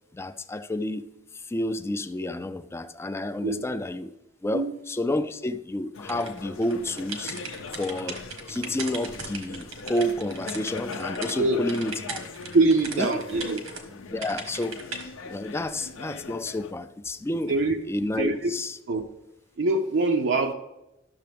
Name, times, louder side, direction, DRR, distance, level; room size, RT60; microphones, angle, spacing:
voice 1, 0.1-1.1 1.3-4.1 4.4-7.4 7.8-12.2 12.9-13.2 14.1-14.8 15.3-17.5 17.9-18.8, left 1 dB, 15° left, 0.3 m, -30 dB
sound 1, 5.9-16.7, left 4 dB, 75° left, 0.6 m, -40 dB
sound 2, 6.1-11.4 11.7-13.8 14.2-15.0, right 3 dB, 90° right, 1.4 m, -38 dB
voice 2, 12.5-13.6 17.5-17.8 18.2-18.5 18.9-19.1 19.6-20.5, right 3 dB, 65° right, 0.5 m, -23 dB
11.5 x 6.7 x 3.4 m
head